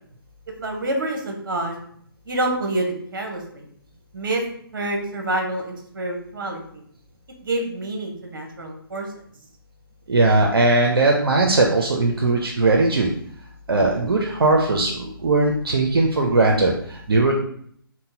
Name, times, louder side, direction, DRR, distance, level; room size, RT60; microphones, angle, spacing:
voice 1, 0.5-1.8 2.3-3.6 4.1-4.4 4.7-6.8 7.4-9.1, right 2 dB, 60° right, 2 dB, 0.8 m, -27 dB
voice 2, 10.1-13.1 13.7-17.3, right 2 dB, 80° right, 0 dB, 0.5 m, -19 dB
3.8 x 2.1 x 2.7 m, 0.63 s
figure-of-eight pair, 140°, 12 cm